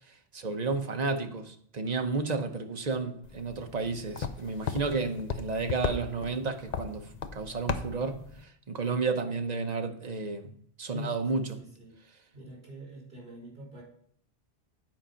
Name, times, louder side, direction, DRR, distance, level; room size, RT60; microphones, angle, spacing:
voice 1, 0.1-10.5 10.8-11.6, right 4 dB, 45° right, 0.9 m, -32 dB
sound 1, 3.2-8.4, left 6 dB, 45° left, 0.7 m, -37 dB
voice 2, 10.9-12.0 12.3-13.8, left 1 dB, 60° right, 4.9 m, -45 dB
9.0 x 5.1 x 5.7 m
omnidirectional pair, 1.1 m